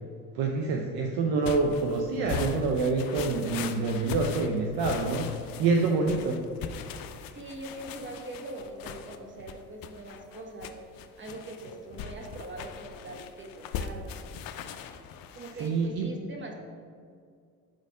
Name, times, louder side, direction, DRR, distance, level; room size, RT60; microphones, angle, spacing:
voice 1, 0.3-5.3 5.6-6.4 15.5-16.1, right 3 dB, 50° right, 2 dB, 0.7 m, -27 dB
sound 1, 1.4-15.8, left 7 dB, 50° left, 0.5 m, -40 dB
voice 2, 5.8-6.2 7.3-10.8 11.2-14.1 15.3-16.5, right 2 dB, 25° right, 2 dB, 1.2 m, -42 dB
4.8 x 4.1 x 5.4 m, 2.1 s
hypercardioid pair, 70°, 46 cm